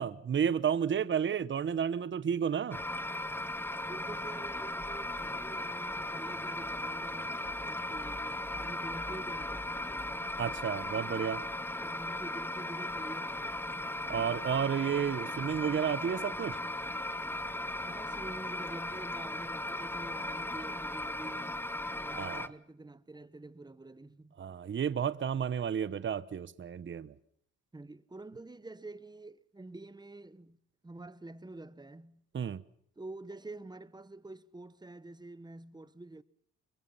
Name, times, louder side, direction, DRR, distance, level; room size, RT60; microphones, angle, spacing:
voice 1, 0.0-2.8 10.4-11.4 14.1-16.6 22.2-22.5 24.4-27.1 32.3-32.6, right 8 dB, 40° right, 1.1 m, -31 dB
voice 2, 0.8-1.1 3.8-10.2 11.8-13.8 17.9-21.6 22.0-24.3 27.7-30.6 30.8-32.2 33.0-36.2, right 2 dB, 15° right, 1.2 m, -48 dB
sound 1, 2.7-22.5, left 1 dB, 5° left, 1.1 m, -37 dB
27.0 x 23.0 x 5.7 m
cardioid pair, 90°, 30 cm